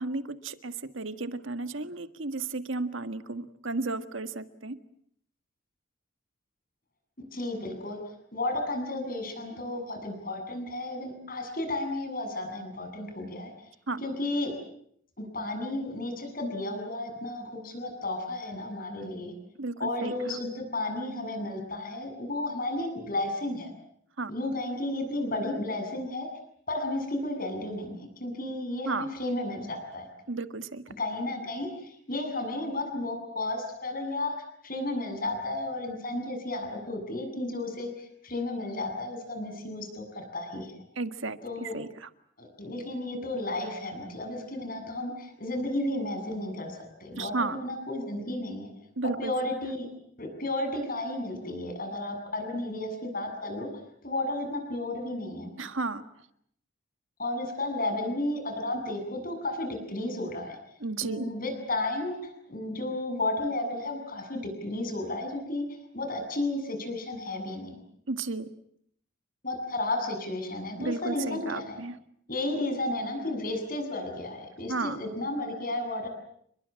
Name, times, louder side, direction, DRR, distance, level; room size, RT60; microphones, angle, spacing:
voice 1, 0.0-4.8 13.9-14.0 19.6-20.1 24.2-24.3 28.8-29.1 30.3-30.8 40.9-42.1 47.1-47.6 49.0-49.3 55.6-56.0 60.8-61.3 68.1-68.5 70.8-72.0 74.7-75.0, right 3 dB, 65° right, 10 dB, 1.7 m, -33 dB
voice 2, 7.3-13.5 14.0-14.5 15.2-19.3 19.8-23.7 24.3-26.3 26.7-30.1 31.0-34.3 34.6-40.8 41.4-41.7 42.4-48.7 49.2-49.9 50.2-53.7 54.0-55.5 57.2-60.6 61.0-65.6 65.9-67.7 69.4-71.8 72.3-76.1, left 2 dB, 40° left, 5 dB, 7.8 m, -33 dB
30.0 x 22.0 x 7.6 m, 0.67 s
head